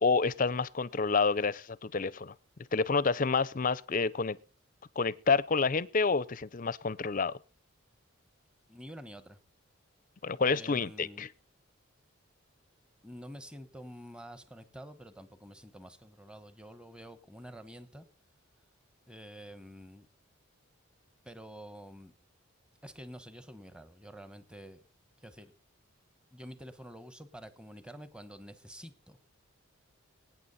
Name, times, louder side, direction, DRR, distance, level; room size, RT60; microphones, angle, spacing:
voice 1, 0.0-2.3 2.7-4.4 5.0-7.3 10.2-11.3, left 4 dB, 40° left, 0.6 m, -28 dB
voice 2, 8.7-9.4 10.5-11.3 13.0-18.0 19.1-20.1 21.2-22.1 22.8-24.8 25.2-25.5 26.3-29.4, equal, 5° right, 1.0 m, -48 dB
22.0 x 9.3 x 4.1 m
head